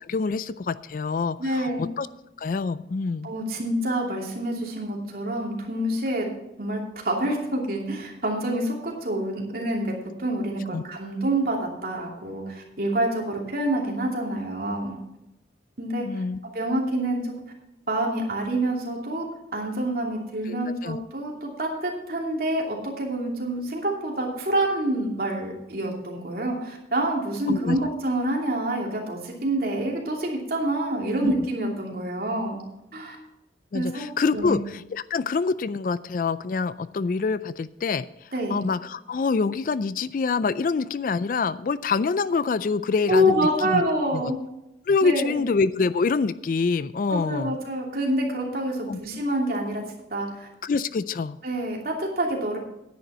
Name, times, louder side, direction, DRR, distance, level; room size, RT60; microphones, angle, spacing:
voice 1, 0.0-2.1 2.4-3.3 10.7-10.8 16.0-16.4 20.5-21.0 27.5-27.9 31.2-31.3 33.7-43.8 44.1-44.3 44.9-47.6 48.9-49.0 50.6-51.4, left 4 dB, 45° left, 16 dB, 0.3 m, -26 dB
voice 2, 1.4-1.8 3.2-6.3 6.6-15.0 15.8-16.2 16.5-17.3 17.9-19.3 19.5-32.6 32.9-33.2 33.7-34.1 34.3-34.6 38.3-38.5 43.1-44.4 45.0-45.4 47.1-49.8 50.1-50.5 51.4-52.6, right 1 dB, 55° right, -1 dB, 2.8 m, -27 dB
10.0 x 9.4 x 5.6 m, 0.89 s
head